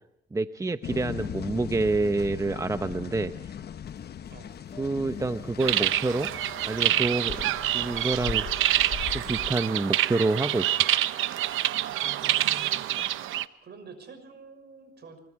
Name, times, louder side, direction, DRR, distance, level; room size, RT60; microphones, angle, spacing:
voice 1, 0.3-3.5 4.8-6.3 6.7-8.5 9.1-10.8, right 3 dB, 15° right, 10 dB, 0.8 m, -28 dB
sound 1, 0.8-9.5, left 8 dB, 55° left, 1.0 m, -39 dB
sound 2, 3.9-10.2, left 2 dB, 35° left, 5.1 m, -51 dB
sound 3, 5.6-13.4, right 13 dB, 85° right, 0.9 m, -27 dB
voice 2, 12.0-13.0 13.6-15.2, right 5 dB, 55° right, 8 dB, 6.3 m, -48 dB
24.5 x 22.5 x 4.7 m, 0.74 s
cardioid pair, 90°, 20 cm